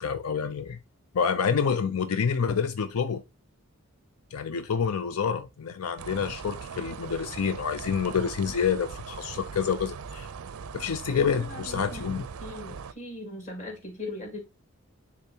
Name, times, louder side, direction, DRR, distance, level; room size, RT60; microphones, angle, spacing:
voice 1, 0.0-0.8 1.1-3.2 4.3-10.3 10.7-12.3, left 6 dB, 85° left, 0.5 m, -28 dB
sound 1, 6.0-12.9, right 6 dB, 90° right, 0.5 m, -40 dB
voice 2, 11.1-14.4, left 1 dB, 35° left, 2.6 m, -39 dB
10.0 x 3.6 x 2.8 m
head